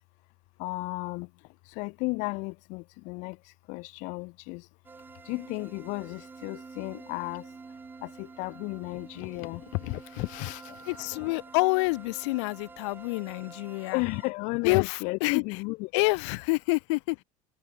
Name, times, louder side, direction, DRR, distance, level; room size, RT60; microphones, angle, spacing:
voice 1, 0.6-1.3 1.8-3.4 3.7-4.6 5.3-7.4 8.0-11.4 13.9-15.9, left 27 dB, 60° left, 2.4 m, -34 dB
sound 1, 4.8-14.3, right 4 dB, 15° right, 3.2 m, -48 dB
voice 2, 10.9-14.0 14.6-15.4 15.9-17.2, left 26 dB, 80° left, 1.9 m, -27 dB
cardioid pair, 160°, 15 cm